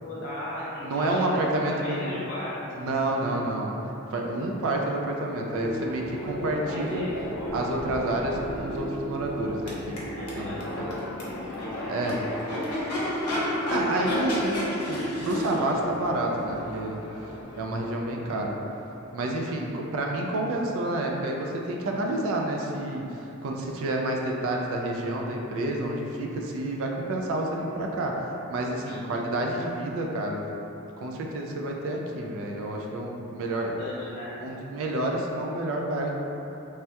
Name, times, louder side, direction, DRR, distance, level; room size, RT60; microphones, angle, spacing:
voice 1, 0.0-2.5 3.3-3.4 6.7-7.1 10.1-12.3 28.9-29.0 33.5-34.4, left 1 dB, 55° left, -9 dB, 0.9 m, -37 dB
voice 2, 0.8-2.2 2.8-3.7 4.1-7.1 7.5-10.0 10.4-10.6 11.9-12.2 13.7-17.0 17.6-18.6 19.1-30.5 31.0-33.7 34.4-36.1, right 1 dB, 60° right, 0 dB, 0.3 m, -29 dB
Crowd / Race car auto racing / Accelerating revving vroom, 5.4-19.2, equal, 90° left, 0.7 m, -32 dB
3.3 x 2.2 x 2.8 m, 3.0 s
head